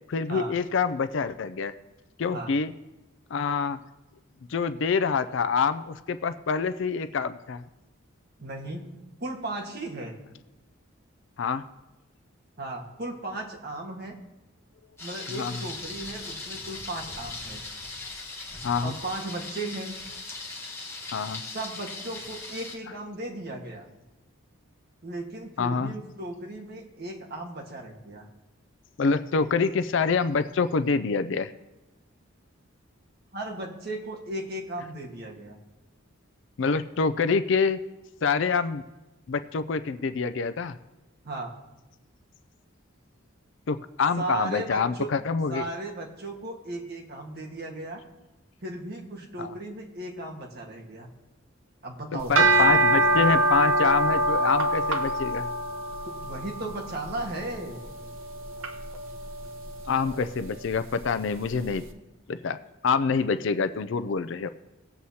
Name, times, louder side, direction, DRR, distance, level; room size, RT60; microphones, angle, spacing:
voice 1, 0.1-1.7 2.2-2.7 3.3-3.8 4.5-7.6 11.4-11.6 15.3-15.6 18.6-18.9 21.1-21.4 25.6-25.9 29.0-31.5 36.6-37.8 38.2-38.8 39.3-40.8 43.7-45.7 49.4-49.5 52.1-55.5 59.9-61.8 62.3-62.6 62.8-64.5, left 5 dB, 60° left, 12 dB, 0.4 m, -26 dB
voice 2, 8.4-8.9 9.2-10.2 12.6-14.2 15.0-17.6 18.8-19.9 21.4-23.9 25.0-28.3 33.3-35.6 41.2-41.5 44.2-45.1 45.5-48.0 48.6-51.1 51.8-52.7 56.0-57.8, right 2 dB, 50° right, 1 dB, 1.5 m, -36 dB
Thunder, 15.0-22.7, left 3 dB, 10° left, 1.3 m, -39 dB
sound 1, 52.2-61.5, right 1 dB, 75° right, 0.9 m, -25 dB
18.0 x 7.8 x 2.8 m, 1.0 s
head